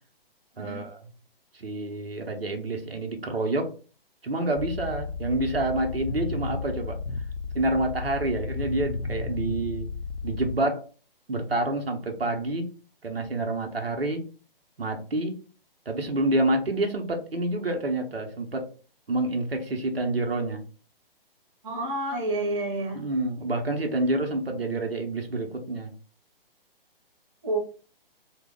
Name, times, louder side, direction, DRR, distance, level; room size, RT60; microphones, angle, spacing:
voice 1, 0.6-1.0 1.5-3.7 4.2-7.0 7.5-9.9 10.2-10.9 11.3-12.6 13.0-14.2 14.8-15.3 15.9-18.7 19.1-20.6 23.0-25.9, right 2 dB, 80° right, 3 dB, 0.7 m, -28 dB
sound 1, 4.6-10.5, left 4 dB, 80° left, 0.5 m, -33 dB
voice 2, 21.6-23.0 27.4-27.6, right 2 dB, 30° right, 2 dB, 0.8 m, -29 dB
2.8 x 2.1 x 3.4 m, 0.37 s
figure-of-eight pair, 130°, 30 cm